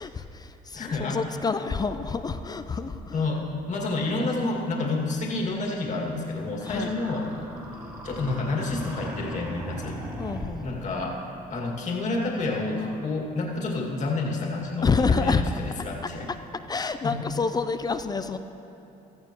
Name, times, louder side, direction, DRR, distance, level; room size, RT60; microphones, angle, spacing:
voice 1, 0.0-3.2 6.6-6.9 10.2-10.7 14.8-15.4 16.7-18.4, left 4 dB, 25° left, 10 dB, 0.5 m, -27 dB
voice 2, 0.7-1.2 3.1-7.3 8.0-10.0 10.6-11.2 11.5-16.3 17.0-17.2, left 3 dB, 45° left, -1 dB, 2.1 m, -29 dB
sound 1, 6.6-10.9, equal, 15° right, 2.5 m, -38 dB
16.0 x 13.5 x 3.0 m, 2.9 s
cardioid pair, 110°, 17 cm